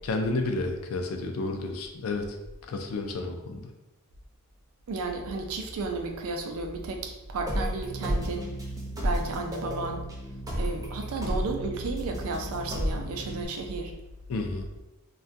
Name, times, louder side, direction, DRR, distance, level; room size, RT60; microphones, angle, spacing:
voice 1, 0.1-2.4 2.7-3.7 14.3-14.7, left 3 dB, 65° left, 4 dB, 0.3 m, -31 dB
voice 2, 4.9-8.5 9.0-10.1 10.6-13.9, right 3 dB, 70° right, 4 dB, 0.4 m, -33 dB
sound 1, 7.5-13.5, equal, 15° right, 0.5 m, -32 dB
2.2 x 2.1 x 2.6 m, 0.98 s
head